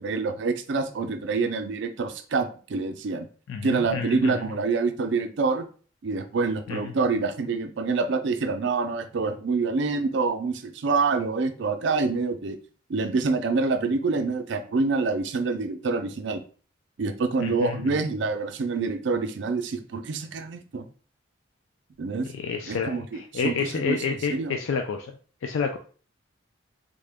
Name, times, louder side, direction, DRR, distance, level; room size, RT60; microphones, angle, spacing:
voice 1, 0.0-3.3 3.6-5.7 6.0-12.6 12.9-16.4 17.0-20.9 22.0-22.3 22.7-24.6, right 4 dB, 65° right, 7 dB, 0.4 m, -26 dB
voice 2, 3.5-4.4 6.7-6.9 17.4-17.8 22.2-25.1 25.4-25.8, left 5 dB, 80° left, 5 dB, 0.3 m, -29 dB
3.6 x 2.1 x 3.4 m, 0.40 s
head